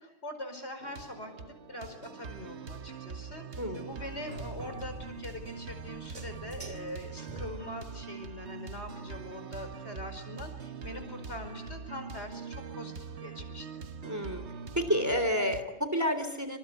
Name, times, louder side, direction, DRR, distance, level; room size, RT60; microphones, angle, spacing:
voice 1, 0.0-12.9 13.2-13.7, left 1 dB, 75° left, 8 dB, 5.4 m, -43 dB
sound 1, 0.8-15.6, right 5 dB, 75° right, 1.6 m, -43 dB
voice 2, 3.6-3.9 14.0-14.4 14.8-16.6, equal, 15° right, 9 dB, 3.4 m, -30 dB
sound 2, 3.9-8.0, right 2 dB, 35° right, 2.0 m, -47 dB
27.5 x 26.0 x 8.2 m, 0.86 s
omnidirectional pair, 1.1 m